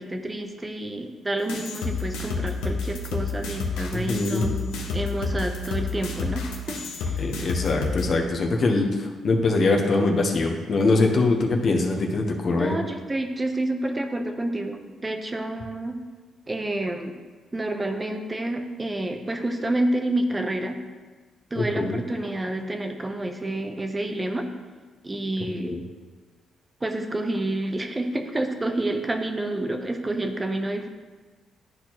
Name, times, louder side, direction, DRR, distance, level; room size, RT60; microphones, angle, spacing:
voice 1, 0.0-7.2 12.6-16.0 16.5-17.2 17.5-20.8 21.5-24.5 25.0-25.7 26.8-30.9, right 1 dB, 20° right, 5 dB, 0.6 m, -29 dB
sound 1, 1.5-8.1, left 4 dB, 90° left, 0.8 m, -29 dB
voice 2, 3.9-4.4 7.2-12.8 21.6-22.0 25.7-25.8, left 3 dB, 55° left, 2 dB, 0.9 m, -23 dB
10.5 x 4.4 x 3.0 m, 1.4 s
cardioid pair, 75°, 0 cm